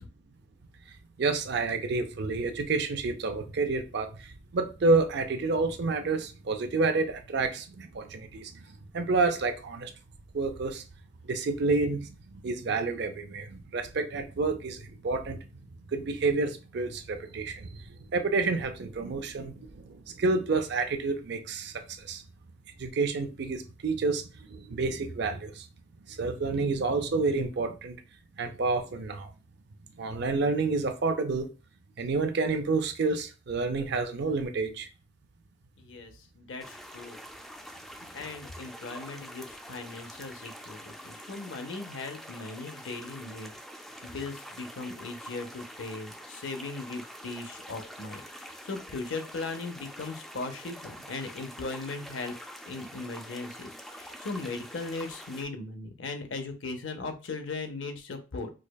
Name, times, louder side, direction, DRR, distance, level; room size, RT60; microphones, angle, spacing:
voice 1, 1.2-8.6 8.9-9.9 10.3-10.8 11.3-15.4 15.9-17.8 18.1-22.2 22.8-24.2 24.5-25.6 26.1-28.0 28.4-29.3 30.0-31.5 32.0-34.9, right 3 dB, 60° right, 0.5 m, -29 dB
voice 2, 35.8-37.2 38.1-43.5 44.0-52.3 52.7-58.5, left 3 dB, 75° left, 0.6 m, -38 dB
sound 1, 36.6-55.4, equal, ahead, 0.3 m, -46 dB
4.8 x 2.2 x 2.3 m
head